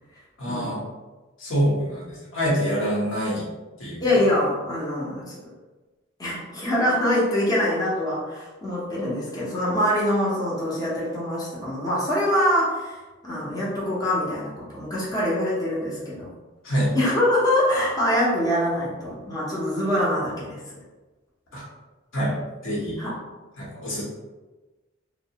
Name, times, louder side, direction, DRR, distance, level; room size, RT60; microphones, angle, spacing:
voice 1, 0.4-0.8 1.4-3.5 3.8-4.0 16.6-16.9 21.5-21.6 22.1-22.3 22.6-23.0 23.6-24.0, equal, 75° left, -5 dB, 1.0 m, -25 dB
voice 2, 4.0-5.5 6.2-13.0 13.2-16.3 16.9-20.6 23.0-23.1, left 1 dB, 20° left, -7 dB, 0.6 m, -24 dB
2.8 x 2.0 x 2.7 m, 1.2 s
head